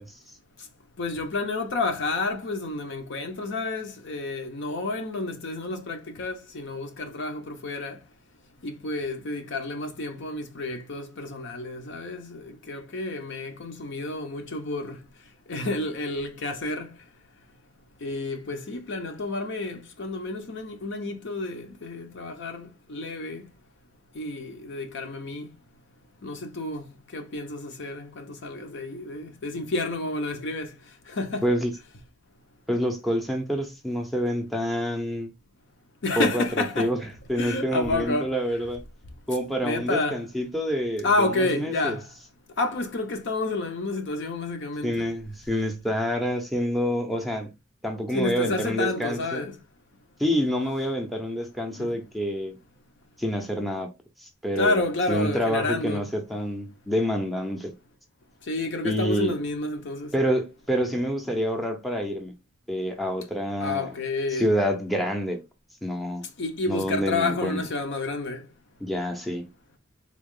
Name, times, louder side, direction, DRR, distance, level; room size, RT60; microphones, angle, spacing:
voice 1, 1.0-8.0 8.6-15.0 15.5-16.9 18.0-23.4 24.1-25.5 26.2-30.7 31.1-31.4 36.0-37.0 37.4-38.3 39.6-40.2 41.0-42.1 42.6-45.1 48.1-49.6 51.8-51.9 54.6-56.1 58.5-60.1 63.6-64.5 66.4-68.4, left 2 dB, 60° left, 0.7 m, -30 dB
voice 2, 32.7-35.3 36.2-36.4 36.8-37.0 37.3-38.8 39.3-42.0 44.8-47.5 47.8-49.4 50.2-52.6 53.2-53.9 54.2-54.8 55.1-57.7 58.8-59.3 60.1-62.3 62.7-63.9 64.3-65.4 65.8-66.2 66.7-67.6 68.8-69.5, equal, ahead, 0.6 m, -27 dB
3.6 x 2.4 x 3.6 m
head